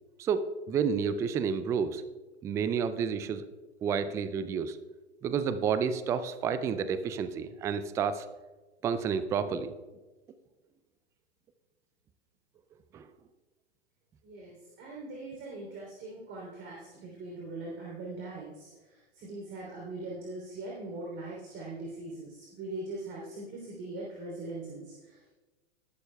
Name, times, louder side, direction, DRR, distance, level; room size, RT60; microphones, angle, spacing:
voice 1, 0.2-2.0 2.4-3.5 3.8-4.8 5.2-8.3 8.8-9.7 12.9-13.1, right 6 dB, 10° right, 12 dB, 0.3 m, -30 dB
voice 2, 14.2-25.3, right 2 dB, 35° right, -2 dB, 3.2 m, -41 dB
19.0 x 12.0 x 2.3 m, 1.2 s
figure-of-eight pair, 100°, 34 cm